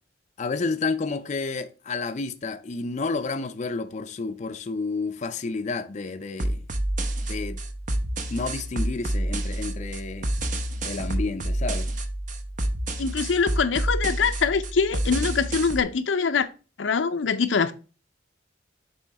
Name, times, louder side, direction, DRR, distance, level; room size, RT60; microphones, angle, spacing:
voice 1, 0.4-6.6 7.3-7.6 8.3-10.3 10.8-11.9, left 3 dB, 40° left, 0.4 m, -30 dB
sound 1, 6.4-15.8, right 1 dB, 45° right, 0.7 m, -28 dB
voice 2, 13.0-16.5 16.8-17.7, left 5 dB, 90° left, 0.5 m, -23 dB
7.0 x 3.1 x 4.6 m
head